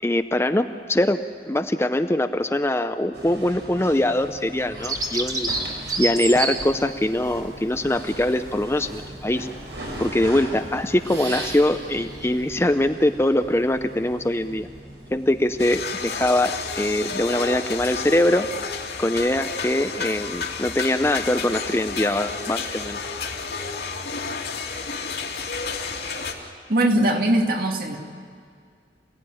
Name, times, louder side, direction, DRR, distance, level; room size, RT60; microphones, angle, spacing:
voice 1, 0.0-5.5 6.0-9.5 10.0-14.7 15.1-18.5 19.0-23.0, left 1 dB, 15° left, 8 dB, 0.6 m, -22 dB
sound 1, 3.1-15.8, right 1 dB, 80° right, 6.0 m, -38 dB
Bird vocalization bird call bird song, 4.8-12.7, right 3 dB, 20° right, 2.2 m, -32 dB
sound 2, 15.6-26.3, left 5 dB, 70° left, 3.0 m, -31 dB
voice 2, 26.7-28.0, right 1 dB, 55° right, 2 dB, 2.5 m, -20 dB
28.0 x 17.5 x 10.0 m, 2.1 s
head